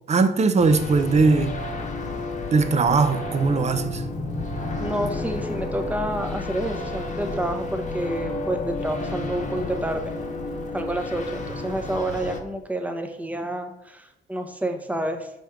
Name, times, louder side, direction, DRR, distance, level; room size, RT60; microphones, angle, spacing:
voice 1, 0.1-1.6 2.5-4.0, right 4 dB, 35° right, 0.6 m, -20 dB
sound 1, 0.6-12.4, left 3 dB, 35° left, 1.0 m, -31 dB
voice 2, 4.8-10.1 10.7-15.3, right 1 dB, 5° right, 0.8 m, -29 dB
5.1 x 3.6 x 5.7 m
cardioid pair, 90°, 20 cm